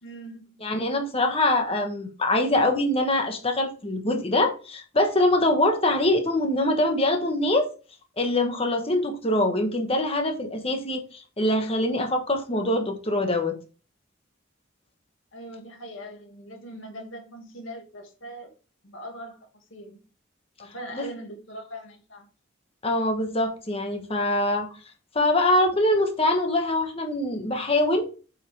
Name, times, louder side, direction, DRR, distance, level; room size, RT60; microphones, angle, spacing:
voice 1, 0.0-0.6 15.3-18.5 18.8-20.0 20.6-22.3, equal, 70° left, 2 dB, 2.1 m, -41 dB
voice 2, 0.6-7.7 8.2-13.6 20.9-21.0 22.8-24.7 25.1-28.1, left 1 dB, 30° left, 4 dB, 1.3 m, -24 dB
8.2 x 4.9 x 3.4 m, 0.35 s
head